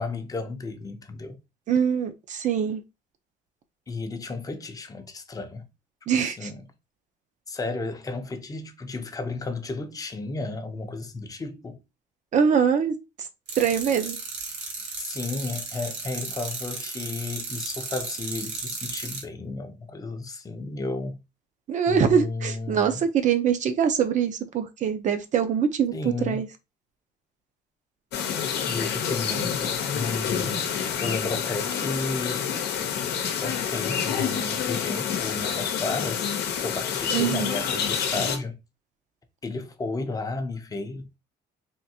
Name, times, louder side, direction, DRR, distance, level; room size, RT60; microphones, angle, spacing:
voice 1, 0.0-1.4 3.9-5.7 6.1-6.7 7.5-11.8 15.0-21.2 21.9-23.1 25.9-26.5 28.6-32.5 33.0-36.3 36.6-38.6 39.4-41.2, left 3 dB, 20° left, 0.6 m, -33 dB
voice 2, 1.7-2.8 6.1-6.5 12.3-13.0 13.6-14.2 21.7-25.9 26.3-26.5 37.1-37.5, right 7 dB, 45° right, 0.6 m, -23 dB
sound 1, 13.5-19.2, right 4 dB, 75° right, 1.4 m, -35 dB
sound 2, 28.1-38.4, left 8 dB, 80° left, 0.8 m, -28 dB
3.6 x 2.5 x 2.7 m
cardioid pair, 110°, 17 cm